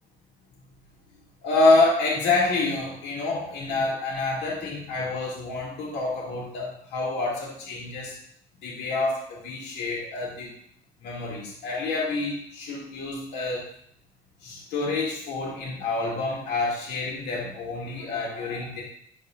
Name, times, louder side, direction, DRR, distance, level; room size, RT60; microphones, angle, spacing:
voice 1, 1.4-8.1 8.6-10.5 11.0-13.7 14.4-18.8, left 3 dB, 90° left, -4 dB, 2.4 m, -27 dB
12.5 x 4.2 x 2.5 m, 0.66 s
cardioid pair, 110°, 17 cm